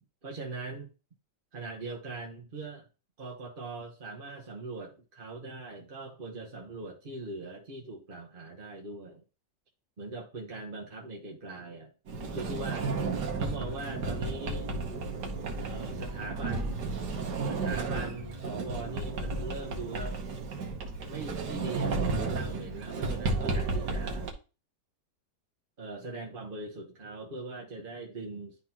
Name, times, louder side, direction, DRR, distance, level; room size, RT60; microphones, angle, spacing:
voice 1, 0.2-0.9 1.5-2.9 3.2-9.2 10.0-11.9 12.3-12.9 13.4-14.7 15.6-16.8 17.5-20.2 21.1-24.3 25.8-28.6, right 3 dB, 35° right, -1 dB, 1.3 m, -41 dB
Sliding door, 12.1-24.3, right 3 dB, 70° right, 1.7 m, -33 dB
11.0 x 3.8 x 2.9 m, 0.32 s
omnidirectional pair, 1.9 m